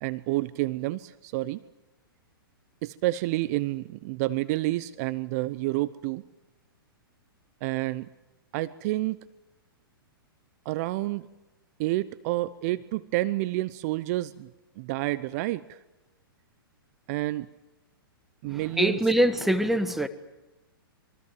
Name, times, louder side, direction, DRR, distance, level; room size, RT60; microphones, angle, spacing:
voice 1, 0.0-1.6 2.8-6.2 7.6-8.1 8.5-9.2 10.6-11.3 11.8-14.5 14.8-15.8 17.1-17.5 18.4-19.0, right 18 dB, 45° right, 16 dB, 0.8 m, -29 dB
voice 2, 18.5-20.1, right 1 dB, ahead, 10 dB, 1.5 m, -24 dB
27.5 x 23.5 x 7.6 m, 1.0 s
hypercardioid pair, 115°, 12 cm